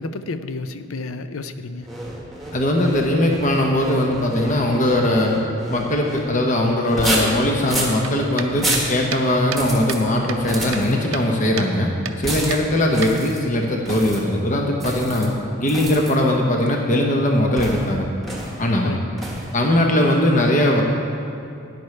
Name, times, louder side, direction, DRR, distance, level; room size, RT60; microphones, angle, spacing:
voice 1, 0.0-1.9 18.8-19.0, left 3 dB, 75° left, 10 dB, 0.5 m, -31 dB
sound 1, 1.8-6.3 6.8-8.0 8.5-8.9 9.5-10.0 10.3-10.9 12.2-12.6 12.9-13.4 13.8-14.2 14.8-15.3 15.7-16.1 17.6-17.9 18.2-18.6 19.2-19.5, right 1 dB, ahead, 1.4 m, -28 dB
voice 2, 2.5-5.4 5.7-11.9 12.2-18.1 18.6-18.9 19.5-20.8, left 1 dB, 35° left, 0 dB, 0.8 m, -20 dB
sound 2, 8.0-10.0 10.3-11.3 11.6-11.7 12.0-12.2 12.5-13.5, right 7 dB, 75° right, 0.6 m, -32 dB
13.0 x 10.5 x 3.2 m, 2.6 s
head